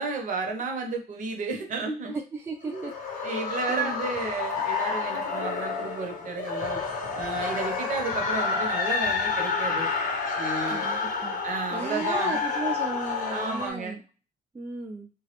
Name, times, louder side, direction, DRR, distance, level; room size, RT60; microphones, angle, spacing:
voice 1, 0.0-2.2 2.6-2.9 3.2-6.8 7.1-9.9 10.4-10.9 11.4-12.4 13.3-14.0, right 4 dB, 50° right, 3 dB, 0.7 m, -32 dB
voice 2, 2.1-2.9 3.2-4.0 10.7-11.4 11.7-14.0 14.5-15.1, right 3 dB, 15° right, 1 dB, 0.4 m, -35 dB
sound 1, 2.6-13.7, left 5 dB, 55° left, 0.8 m, -29 dB
2.3 x 2.0 x 2.9 m, 0.35 s
cardioid pair, 110°, 17 cm